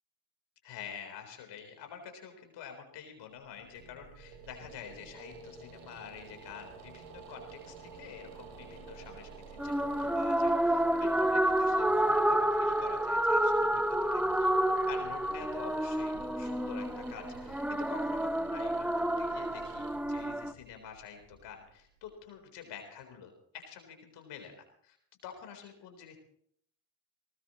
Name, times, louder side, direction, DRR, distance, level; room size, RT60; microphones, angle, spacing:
voice 1, 0.6-14.5 14.9-25.0 25.2-26.2, left 7 dB, 60° left, 5 dB, 4.2 m, -48 dB
sound 1, 3.4-22.3, right 5 dB, 70° right, 3.1 m, -50 dB
sound 2, 9.6-20.5, right 1 dB, 5° right, 0.8 m, -29 dB
19.5 x 19.0 x 3.2 m, 0.65 s
figure-of-eight pair, 40°, 46 cm